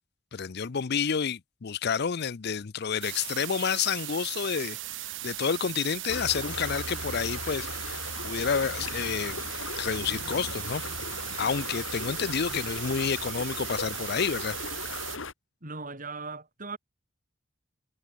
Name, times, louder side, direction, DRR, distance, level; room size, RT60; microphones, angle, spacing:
voice 1, 0.3-4.8 5.0-9.4 9.8-10.8 11.4-14.6, left 6 dB, 55° left, 0.5 m, -29 dB
sound 1, 3.0-15.2, right 16 dB, 65° right, 0.8 m, -38 dB
sound 2, 6.1-15.3, left 3 dB, 75° left, 3.0 m, -38 dB
voice 2, 15.6-16.8, right 4 dB, 40° right, 3.7 m, -39 dB
head